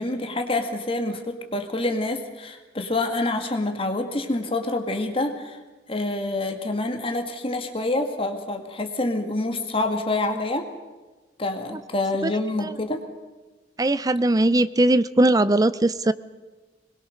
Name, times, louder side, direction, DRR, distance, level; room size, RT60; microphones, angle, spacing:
voice 1, 0.0-5.6 5.9-10.7 11.4-13.0, left 2 dB, 30° left, 5 dB, 2.0 m, -27 dB
voice 2, 13.8-16.1, right 1 dB, 20° right, 15 dB, 0.6 m, -19 dB
22.0 x 21.0 x 6.6 m, 1.2 s
head